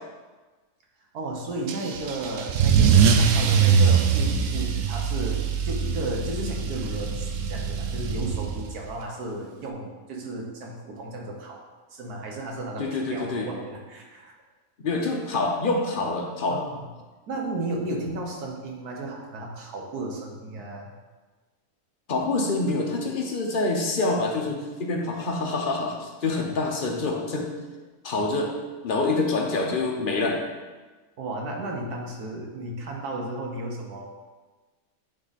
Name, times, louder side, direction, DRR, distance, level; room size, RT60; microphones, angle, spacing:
voice 1, 1.1-11.6 11.9-14.3 16.5-16.8 17.3-20.9 31.2-34.0, right 2 dB, 85° right, 0 dB, 1.6 m, -34 dB
Car / Engine starting / Accelerating revving vroom, 1.7-8.8, right 6 dB, 65° right, 0.8 m, -22 dB
voice 2, 12.8-13.5 14.8-16.6 22.1-27.5 28.0-28.5 28.8-30.4, left 3 dB, 45° left, 0 dB, 0.8 m, -26 dB
9.0 x 3.4 x 4.0 m, 1.3 s
omnidirectional pair, 1.6 m